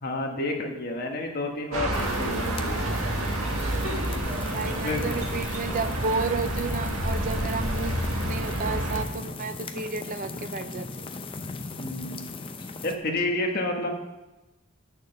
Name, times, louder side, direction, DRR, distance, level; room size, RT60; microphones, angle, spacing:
voice 1, 0.0-2.8 4.1-4.3 4.6-5.1 11.8-12.3 12.8-13.9, left 2 dB, 45° left, 1 dB, 1.5 m, -30 dB
sound 1, 1.7-9.0, right 1 dB, 85° right, 1.7 m, -29 dB
sound 2, 1.9-13.0, left 3 dB, 25° left, 0.6 m, -39 dB
voice 2, 4.5-8.0 8.2-11.1, right 4 dB, 40° right, 10 dB, 0.5 m, -32 dB
9.8 x 6.6 x 6.7 m, 1.0 s
head